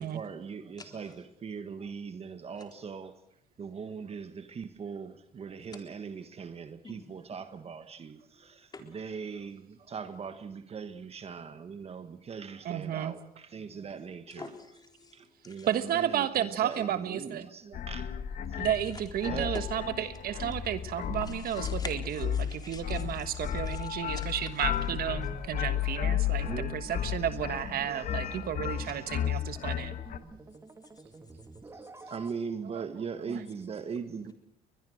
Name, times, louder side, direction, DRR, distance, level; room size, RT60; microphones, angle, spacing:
voice 1, 0.0-3.2 3.6-14.5 15.1-18.2 18.5-18.6 19.2-19.5 26.4-26.8 28.8-29.0 31.7-34.3, right 6 dB, 35° right, 1.4 m, -40 dB
voice 2, 0.8-1.1 2.6-2.7 5.7-5.8 6.8-7.1 8.3-8.8 14.3-15.7 18.8-19.0 21.2-24.4 27.9-28.2 28.9-29.0 30.7-32.1 33.2-34.3, left 3 dB, 25° left, 3.9 m, -49 dB
voice 3, 12.6-13.1 15.7-17.4 18.6-29.9 32.8-32.9, right 10 dB, 60° right, 1.4 m, -32 dB
sound 1, 17.7-30.2, left 10 dB, 55° left, 1.6 m, -33 dB
sound 2, 25.7-32.3, right 3 dB, 15° right, 1.8 m, -50 dB
22.5 x 21.0 x 6.5 m
cardioid pair, 110°, 17 cm